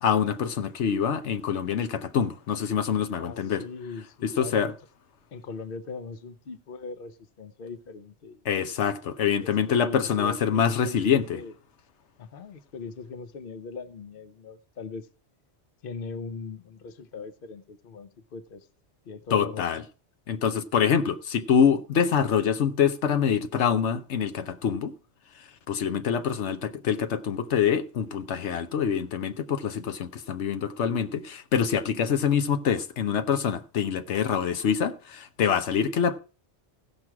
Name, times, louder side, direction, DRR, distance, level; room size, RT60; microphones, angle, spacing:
voice 1, 0.0-3.6 4.2-4.7 8.5-11.4 19.3-19.8 20.3-24.9 25.7-36.2, left 7 dB, 85° left, 1.1 m, -25 dB
voice 2, 3.2-4.8 5.3-8.4 9.4-11.5 12.2-15.1 15.8-18.7 19.1-19.7, left 5 dB, 55° left, 0.9 m, -40 dB
16.0 x 6.1 x 4.6 m
omnidirectional pair, 1.1 m